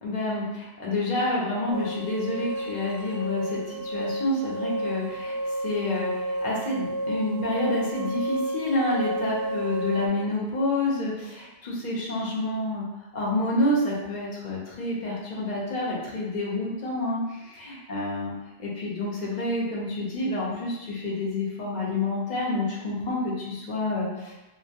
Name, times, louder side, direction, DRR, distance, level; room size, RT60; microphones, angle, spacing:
voice 1, 0.0-12.8 13.1-18.3 18.6-24.3, left 2 dB, 50° left, -5 dB, 0.6 m, -28 dB
sound 1, 1.7-10.1, right 1 dB, 65° right, 0.7 m, -32 dB
2.2 x 2.1 x 2.7 m, 1.1 s
omnidirectional pair, 1.2 m